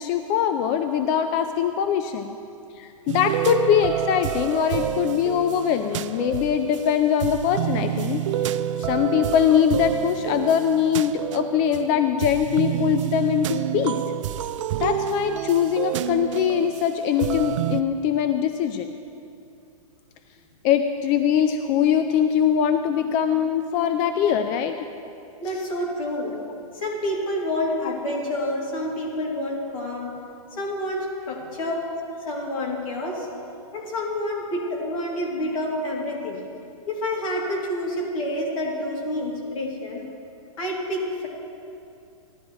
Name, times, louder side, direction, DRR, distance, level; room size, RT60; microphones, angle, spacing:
voice 1, 0.0-2.4 2.8-8.2 8.8-14.0 14.8-18.9 20.6-24.8, left 8 dB, 30° left, 8 dB, 0.4 m, -22 dB
sound 1, 3.1-17.8, right 11 dB, 60° right, 0.4 m, -28 dB
voice 2, 25.4-26.4 26.7-30.1 30.5-31.9 32.2-33.3 33.7-36.4 36.9-40.0 40.6-41.3, left 1 dB, 65° left, -2 dB, 2.9 m, -28 dB
15.0 x 11.5 x 3.1 m, 2.6 s
hypercardioid pair, 135°, 18 cm